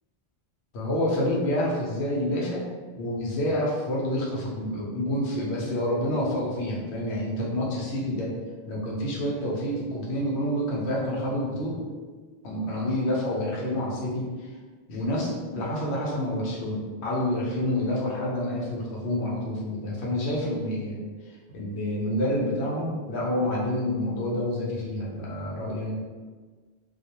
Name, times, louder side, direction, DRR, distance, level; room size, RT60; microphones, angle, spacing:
voice 1, 0.7-2.7 2.9-8.3 8.7-11.8 12.4-14.5 14.9-21.0 21.5-25.9, left 1 dB, 90° left, -4 dB, 0.9 m, -28 dB
2.4 x 2.0 x 2.8 m, 1.4 s
omnidirectional pair, 1.1 m